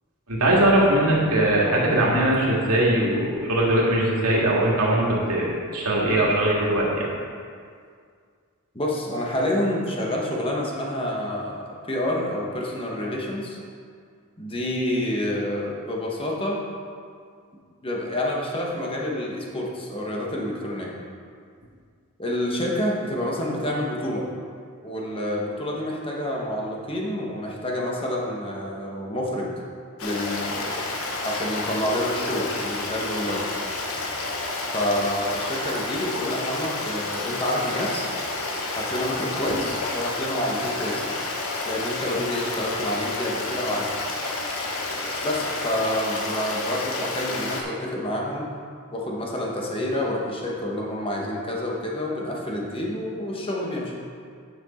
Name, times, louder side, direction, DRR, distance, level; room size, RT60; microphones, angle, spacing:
voice 1, 0.3-7.1 39.5-39.6, right 1 dB, 85° right, -4 dB, 2.0 m, -21 dB
voice 2, 8.7-13.6 14.4-16.6 17.8-20.9 22.2-24.3 24.8-29.5 30.0-30.8 31.2-33.4 34.7-38.1 38.7-41.2 41.6-43.9 45.2-48.5 48.9-53.9, left 1 dB, 25° left, -2 dB, 1.3 m, -28 dB
Stream, 30.0-47.6, left 2 dB, 70° left, 1.2 m, -30 dB
9.5 x 6.2 x 4.3 m, 2.1 s
head